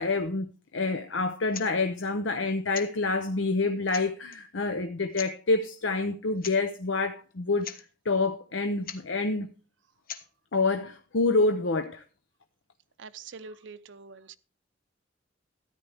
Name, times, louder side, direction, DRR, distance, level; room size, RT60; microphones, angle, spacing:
voice 1, 0.0-7.7 8.0-9.5 10.5-12.0, left 3 dB, 80° left, 0.8 m, -27 dB
sound 1, 1.5-1.7 2.7-2.9 3.5-3.6 3.9-4.4 5.1-5.3 6.4-6.6 6.8-6.9 7.3-7.4 7.6-7.8 8.8-9.0 10.1-10.3, left 8 dB, 50° left, 1.2 m, -40 dB
voice 2, 13.0-14.4, right 5 dB, 75° right, 0.6 m, -45 dB
13.5 x 9.9 x 3.5 m
head